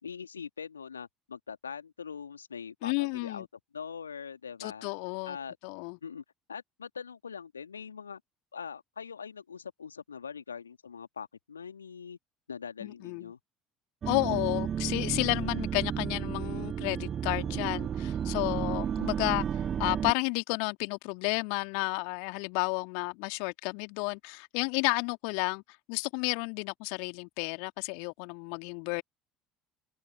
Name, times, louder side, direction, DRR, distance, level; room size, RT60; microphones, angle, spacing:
voice 1, 0.0-3.5 3.7-4.9 5.3-5.6 6.0-6.2 6.5-8.2 8.5-12.2 12.5-13.4, left 6 dB, 80° left, 2.1 m, -42 dB
voice 2, 2.8-3.4 4.6-5.4 5.6-6.0 12.8-13.3 14.0-19.5 19.8-25.6 25.9-29.0, left 40 dB or more, 60° left, 2.1 m, -32 dB
sound 1, 14.0-20.1, right 8 dB, 40° right, 1.1 m, -32 dB
figure-of-eight pair, 60°, 0 cm